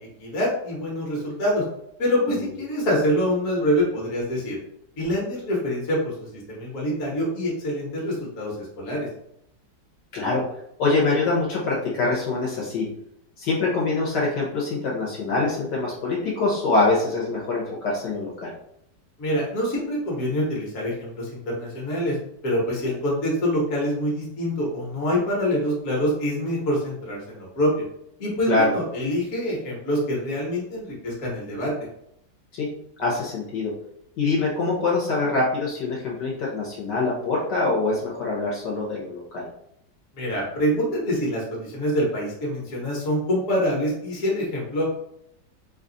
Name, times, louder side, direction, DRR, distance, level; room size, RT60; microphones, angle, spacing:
voice 1, 0.2-1.6 2.0-4.6 5.0-9.1 19.2-22.2 22.4-27.8 28.2-31.7 40.1-44.8, equal, 45° left, -3 dB, 1.4 m, -25 dB
voice 2, 10.8-12.9 13.4-18.5 28.5-28.7 32.6-32.7 33.0-33.7 34.2-39.4, left 3 dB, 70° left, -5 dB, 1.5 m, -24 dB
3.4 x 2.4 x 3.9 m, 0.73 s
omnidirectional pair, 2.0 m